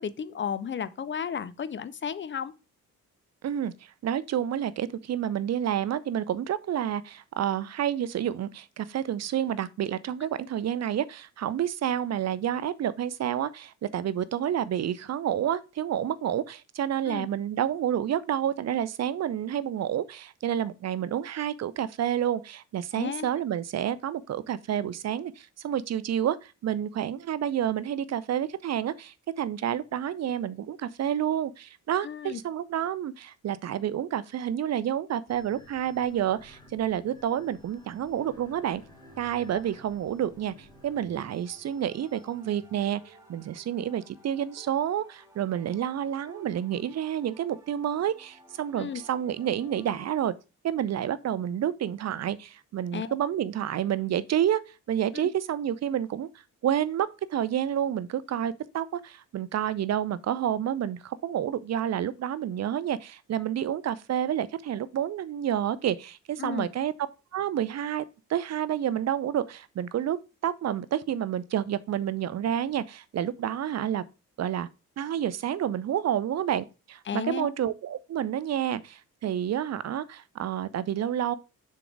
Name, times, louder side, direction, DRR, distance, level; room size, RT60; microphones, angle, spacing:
voice 1, 0.0-2.5 17.1-17.3 22.9-23.3 32.0-32.4 39.5-39.6 48.7-49.0 52.9-53.2 55.1-55.3 66.4-66.7 77.1-77.5, left 7 dB, 25° left, 0.6 m, -33 dB
voice 2, 3.4-38.8 39.2-50.3 50.6-54.6 54.9-56.3 56.6-66.9 67.3-68.0 68.3-70.2 70.4-74.0 74.4-74.7 75.0-81.3, right 10 dB, 35° right, 0.6 m, -29 dB
sound 1, 35.3-42.9, equal, 10° left, 2.8 m, -55 dB
sound 2, 38.1-50.2, right 1 dB, 5° right, 2.3 m, -55 dB
6.9 x 3.7 x 4.6 m
figure-of-eight pair, 40°, 46 cm